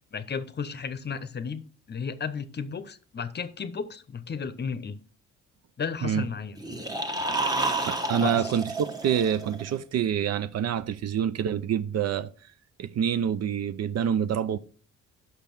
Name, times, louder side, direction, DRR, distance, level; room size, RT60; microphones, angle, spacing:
voice 1, 0.1-5.0 5.8-6.6 8.2-8.5, left 6 dB, 35° left, 0.7 m, -34 dB
sound 1, 6.6-9.7, right 2 dB, 15° right, 1.1 m, -30 dB
voice 2, 7.8-12.3 12.8-14.6, right 8 dB, 55° right, 0.6 m, -27 dB
5.9 x 5.2 x 6.0 m
cardioid pair, 90°, 30 cm